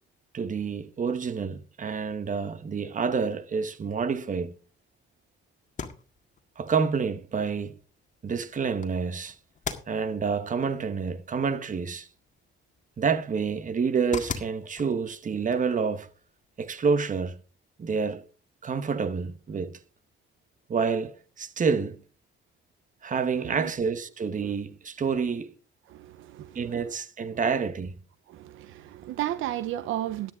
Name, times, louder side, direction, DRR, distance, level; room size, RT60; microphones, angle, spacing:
voice 1, 0.3-4.6 6.6-7.7 8.2-9.3 9.9-12.1 13.0-16.1 16.6-17.4 17.8-18.2 18.6-19.7 20.7-22.0 23.0-25.6 26.5-28.0, right 5 dB, 40° right, 1.2 m, -28 dB
sound 1, 5.6-17.3, left 5 dB, 40° left, 1.9 m, -44 dB
voice 2, 23.4-23.7 24.5-24.6 25.9-26.9 28.3-30.3, right 13 dB, 85° right, 0.8 m, -34 dB
13.0 x 10.5 x 3.7 m
cardioid pair, 90°, 20 cm